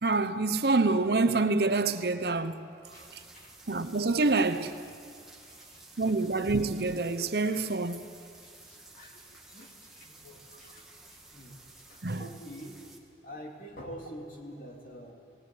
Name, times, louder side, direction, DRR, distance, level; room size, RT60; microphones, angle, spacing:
voice 1, 0.0-2.6 3.7-4.7 6.0-8.1 12.0-12.2, right 3 dB, 60° right, 0.8 m, -27 dB
sound 1, 2.8-13.0, right 2 dB, ahead, 2.0 m, -53 dB
voice 2, 2.9-3.6 5.5-6.1 8.4-11.6 11.9-12.8 13.2-15.1, equal, 45° left, 3.4 m, -47 dB
19.0 x 19.0 x 9.6 m
head